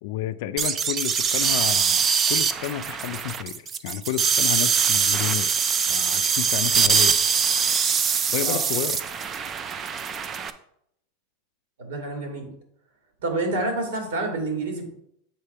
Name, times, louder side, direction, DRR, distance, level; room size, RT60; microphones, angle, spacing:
voice 1, 0.0-5.5 5.9-7.2 8.3-9.0, left 12 dB, 55° left, 10 dB, 0.3 m, -31 dB
sound 1, 0.6-10.5, right 6 dB, 20° right, 0.4 m, -23 dB
voice 2, 11.8-12.5 13.2-14.9, right 2 dB, 80° right, 2 dB, 2.3 m, -28 dB
7.5 x 3.4 x 5.5 m, 0.73 s
supercardioid pair, 165°, 0 cm